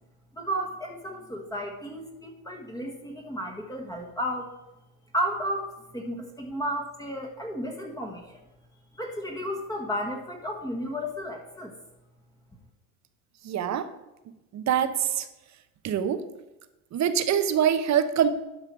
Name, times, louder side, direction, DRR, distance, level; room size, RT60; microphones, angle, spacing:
voice 1, 0.3-4.5 5.1-8.3 8.9-11.7, equal, 10° left, 1 dB, 1.4 m, -33 dB
voice 2, 13.4-13.9 14.5-15.3 15.8-16.2 16.9-18.3, right 9 dB, 40° right, 11 dB, 0.8 m, -24 dB
11.5 x 5.6 x 4.7 m, 0.99 s
supercardioid pair, 120°, 44 cm